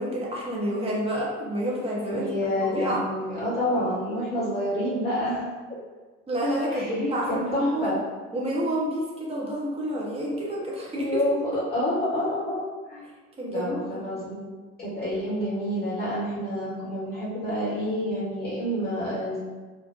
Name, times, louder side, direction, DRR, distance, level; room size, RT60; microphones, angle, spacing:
voice 1, 0.0-2.3 2.6-3.0 6.3-8.0 8.3-11.2 11.5-11.6 13.4-14.0, equal, 15° right, -4 dB, 0.7 m, -28 dB
voice 2, 2.1-5.4 5.7-5.8 6.7-8.0 10.9-13.0 13.5-14.4 14.8-19.4, left 1 dB, 25° left, -9 dB, 0.9 m, -28 dB
2.5 x 2.1 x 2.4 m, 1.3 s
figure-of-eight pair, 60°, 36 cm